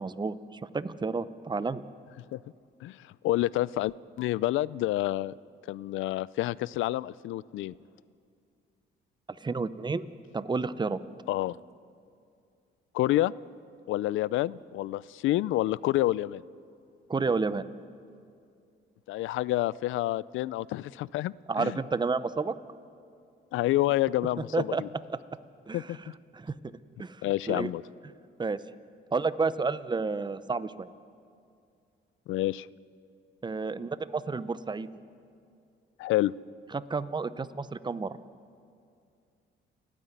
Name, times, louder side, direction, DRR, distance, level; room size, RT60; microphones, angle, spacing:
voice 1, 0.0-1.8 9.4-10.1 10.3-11.0 17.1-17.6 21.5-22.5 24.5-24.8 25.1-25.2 25.7-25.9 26.3-26.5 27.0-27.2 27.5-27.7 28.4-28.6 29.1-30.9 33.4-34.9 36.7-38.2, right 4 dB, 20° right, 15 dB, 0.7 m, -30 dB
voice 2, 2.8-5.3 5.7-7.7 11.3-11.6 12.9-13.3 13.9-16.4 19.1-21.8 23.5-24.9 25.7-26.0 27.2-27.8 32.3-32.7 36.0-36.3, left 15 dB, 80° left, 21 dB, 0.4 m, -28 dB
29.5 x 9.8 x 9.3 m, 2.4 s
cardioid pair, 90°, 20 cm